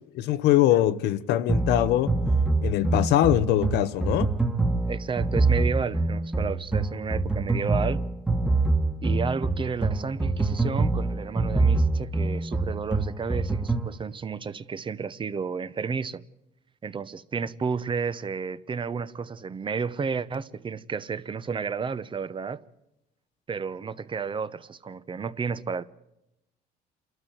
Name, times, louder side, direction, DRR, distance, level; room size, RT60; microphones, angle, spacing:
voice 1, 0.2-2.1 2.6-4.3, left 13 dB, 85° left, 0.9 m, -22 dB
sound 1, 1.5-13.9, right 3 dB, 5° right, 1.6 m, -25 dB
voice 2, 4.9-8.1 9.0-16.2 16.8-22.6 23.5-25.8, right 5 dB, 30° right, 0.9 m, -32 dB
28.0 x 12.5 x 9.3 m
cardioid pair, 110°, 17 cm